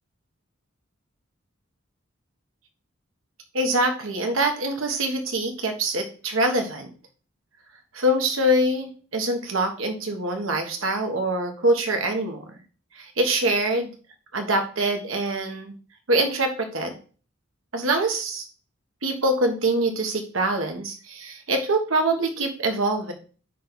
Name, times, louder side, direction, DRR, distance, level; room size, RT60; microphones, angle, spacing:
voice 1, 3.5-6.9 7.9-12.4 13.0-13.9 14.3-15.7 16.1-17.0 17.7-18.4 19.0-23.1, right 1 dB, 80° right, 5 dB, 1.5 m, -24 dB
9.3 x 3.4 x 4.0 m, 0.37 s
head